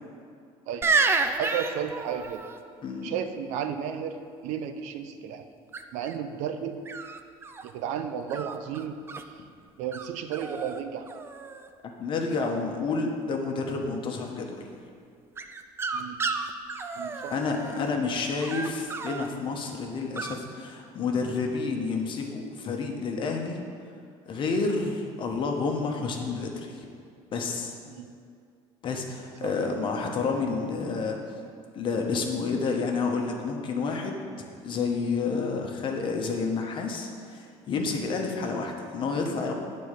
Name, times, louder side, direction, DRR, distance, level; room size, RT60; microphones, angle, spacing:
sound 1, 0.8-2.6 5.7-6.1 6.9-7.7 8.3-9.2 9.9-10.1 10.3-10.8 11.1-11.7 15.4-17.9 18.4-19.3 20.2-20.4, right 4 dB, 20° right, 0.4 m, -30 dB
voice 1, 1.4-2.5 3.0-5.4 5.9-6.8 7.6-9.0 9.8-11.2 15.9-16.2 17.0-17.3 17.6-17.7 27.9-28.1 29.4-29.5, right 8 dB, 70° right, 8 dB, 0.6 m, -33 dB
voice 2, 2.8-3.1 11.8-14.7 17.3-23.6 24.3-26.9 27.3-27.7 28.8-31.2 31.7-34.3 34.6-39.5, left 4 dB, 40° left, 2 dB, 1.1 m, -29 dB
9.2 x 4.3 x 6.6 m, 2.3 s
cardioid pair, 135°, 13 cm